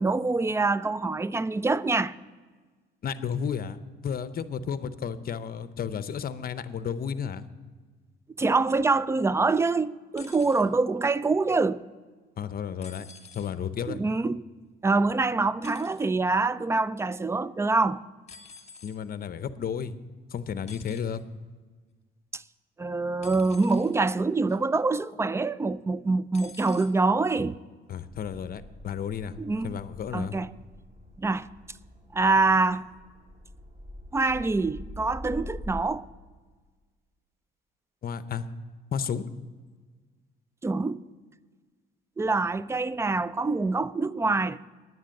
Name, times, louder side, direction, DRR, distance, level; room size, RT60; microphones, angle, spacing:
voice 1, 0.0-2.1 8.4-11.8 13.9-14.4 14.8-18.0 22.3-22.4 22.8-27.6 29.4-29.8 30.1-30.5 31.2-31.5 32.1-32.9 34.1-36.1 40.6-41.1 42.2-44.6, right 3 dB, 15° right, 0.3 m, -25 dB
voice 2, 3.0-7.4 12.4-13.1 13.3-14.0 18.8-19.9 20.3-21.2 27.9-29.4 29.6-30.4 38.0-38.5 38.9-39.2, left 7 dB, 50° left, 0.7 m, -32 dB
sound 1, 10.2-10.6 12.8-13.5 15.6-16.0 18.3-19.0 20.7-21.2 23.2-23.9 24.5-24.8 26.3-26.9 27.9-28.0, left 5 dB, 35° left, 1.4 m, -48 dB
sound 2, 28.1-35.8, left 1 dB, 30° right, 2.1 m, -44 dB
10.0 x 9.4 x 6.5 m
cardioid pair, 90°, 20 cm